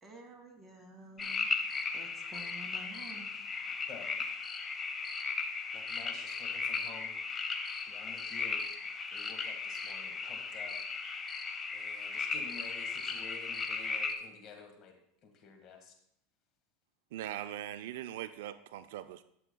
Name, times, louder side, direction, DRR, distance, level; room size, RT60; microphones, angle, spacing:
voice 1, 0.0-1.5 1.9-3.3, right 2 dB, 15° right, 1 dB, 1.9 m, -51 dB
sound 1, 1.2-14.1, left 4 dB, 25° left, 0.9 m, -36 dB
voice 2, 5.7-7.1 7.9-8.6 9.1-10.8 11.7-15.0 15.2-15.9, left 5 dB, 45° left, 4 dB, 1.6 m, -51 dB
voice 3, 17.1-19.2, right 12 dB, 75° right, 12 dB, 0.4 m, -41 dB
12.5 x 7.0 x 2.2 m, 0.74 s
hypercardioid pair, 105°, 0 cm